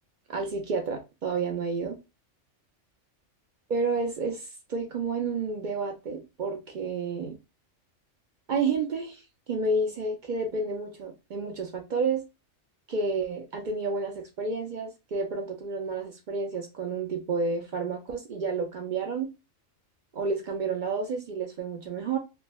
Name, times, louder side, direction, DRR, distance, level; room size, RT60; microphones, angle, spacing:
voice 1, 0.3-2.0 3.7-7.4 8.5-9.2 9.5-12.2 12.9-19.3 20.1-22.2, right 4 dB, 65° right, 0.4 m, -30 dB
3.3 x 2.0 x 2.2 m
omnidirectional pair, 1.4 m